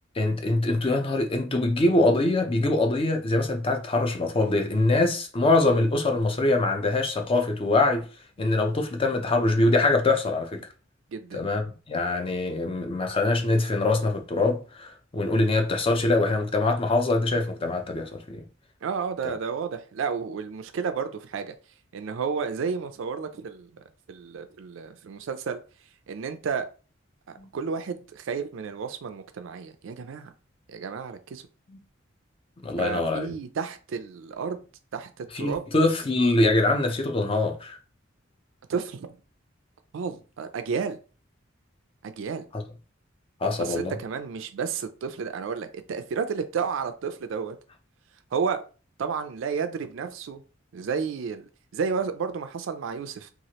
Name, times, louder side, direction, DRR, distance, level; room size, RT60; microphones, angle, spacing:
voice 1, 0.2-8.1 8.4-10.7 11.3-18.4 19.2-19.3 27.4-27.5 31.7-31.8 32.6-33.3 35.3-37.8 42.5-42.6 43.4-43.9, left 2 dB, 30° left, 0.5 m, -24 dB
voice 2, 11.1-11.5 18.8-21.5 21.9-23.7 24.1-25.6 26.1-26.7 27.5-30.3 30.7-31.4 32.8-34.6 34.9-35.6 38.7-39.1 39.9-41.0 42.0-42.5 43.6-47.6 48.3-48.6 49.0-50.4 50.7-51.5 51.7-53.3, right 6 dB, 70° right, 0.4 m, -31 dB
3.0 x 2.4 x 2.8 m
head